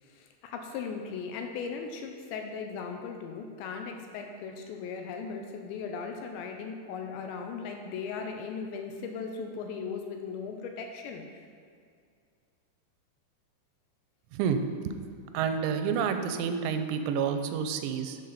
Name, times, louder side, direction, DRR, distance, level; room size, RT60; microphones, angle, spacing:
voice 1, 0.0-11.4, left 5 dB, 80° left, 4 dB, 2.8 m, -38 dB
voice 2, 15.3-18.2, right 7 dB, 90° right, 7 dB, 3.0 m, -29 dB
11.5 x 7.1 x 4.2 m, 2.3 s
omnidirectional pair, 5.4 m